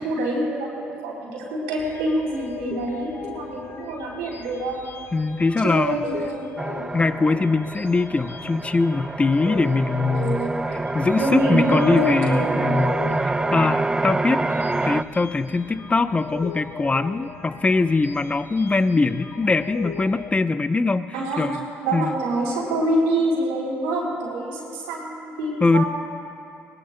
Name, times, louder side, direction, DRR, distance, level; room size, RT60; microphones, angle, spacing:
voice 1, 0.0-4.8 5.6-6.2 6.5-6.8 10.1-10.9 11.1-12.9 21.1-21.5 21.8-25.9, right 1 dB, 90° right, -4 dB, 3.7 m, -26 dB
sound 1, 1.8-20.3, left 6 dB, 55° left, 1.5 m, -39 dB
voice 2, 5.1-6.0 6.9-10.4 10.9-14.5 14.8-21.6 21.9-22.1 25.6-25.8, left 3 dB, 25° left, 11 dB, 0.7 m, -22 dB
sound 2, 6.6-15.0, right 2 dB, 15° right, 0.3 m, -26 dB
21.5 x 19.0 x 2.2 m, 2.6 s
supercardioid pair, 65°, 5 cm